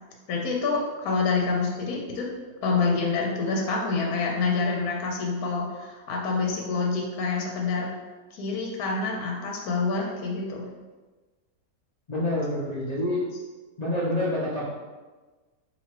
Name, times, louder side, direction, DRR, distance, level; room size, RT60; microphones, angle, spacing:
voice 1, 0.3-2.3 2.6-7.9 8.3-10.6, left 4 dB, 65° left, -1 dB, 1.0 m, -27 dB
voice 2, 12.1-13.3 13.8-14.6, left 1 dB, 85° left, -7 dB, 0.3 m, -27 dB
3.0 x 2.7 x 4.2 m, 1.3 s
omnidirectional pair, 1.8 m